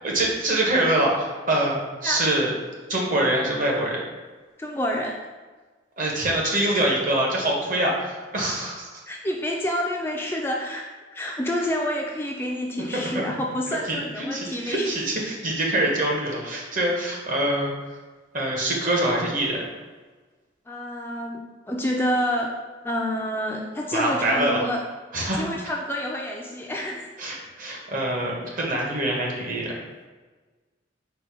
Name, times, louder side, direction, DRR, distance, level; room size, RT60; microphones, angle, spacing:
voice 1, 0.0-2.5 2.9-4.0 6.0-8.9 12.9-13.2 13.7-17.7 18.3-19.7 23.9-24.6 25.1-25.5 27.2-29.7, right 1 dB, 45° right, -2 dB, 1.0 m, -24 dB
voice 2, 2.0-2.4 4.6-5.2 9.1-14.9 20.7-22.5 22.8-24.8 25.4-27.1, equal, 10° left, -1 dB, 0.3 m, -28 dB
5.0 x 2.2 x 4.7 m, 1.3 s
head